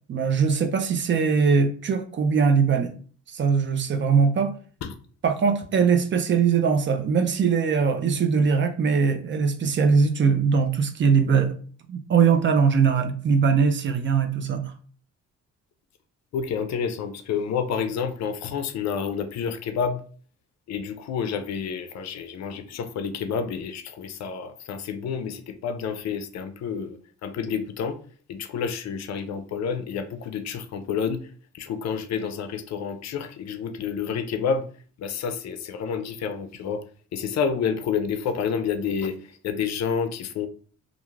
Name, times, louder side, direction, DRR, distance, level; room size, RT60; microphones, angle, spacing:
voice 1, 0.1-2.9 3.3-4.5 5.2-11.5 11.9-14.7, right 6 dB, 40° right, 0.4 m, -21 dB
voice 2, 16.3-20.0 20.7-27.0 27.2-28.0 28.3-31.2 31.6-34.6 35.0-36.8 37.1-39.2 39.4-40.5, left 6 dB, 60° left, 0.5 m, -29 dB
2.4 x 2.3 x 3.1 m
cardioid pair, 90°, 30 cm